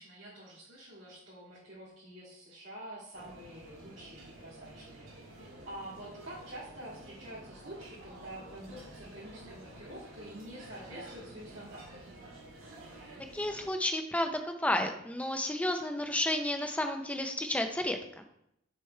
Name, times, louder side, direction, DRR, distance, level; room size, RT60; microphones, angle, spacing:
voice 1, 0.0-12.0, right 1 dB, 65° right, -11 dB, 2.0 m, -47 dB
sound 1, 3.1-13.7, right 1 dB, 85° right, 2.1 m, -50 dB
voice 2, 13.3-18.2, left 1 dB, 5° left, 5 dB, 0.5 m, -32 dB
6.5 x 3.4 x 4.4 m, 0.77 s
head